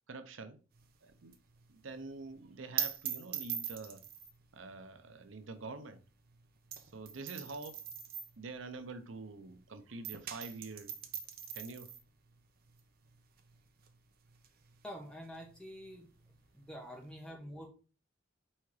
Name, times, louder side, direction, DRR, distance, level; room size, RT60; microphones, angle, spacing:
voice 1, 0.1-0.6 1.0-1.3 1.7-4.0 4.5-6.0 6.8-7.8 8.4-11.0 11.5-11.9, right 3 dB, 90° right, 0.7 m, -46 dB
sound 1, 0.7-9.6 9.9-17.1, right 9 dB, 50° right, 0.9 m, -43 dB
voice 2, 14.8-16.1 16.5-17.7, equal, 5° left, 1.5 m, -47 dB
4.7 x 4.3 x 4.7 m
head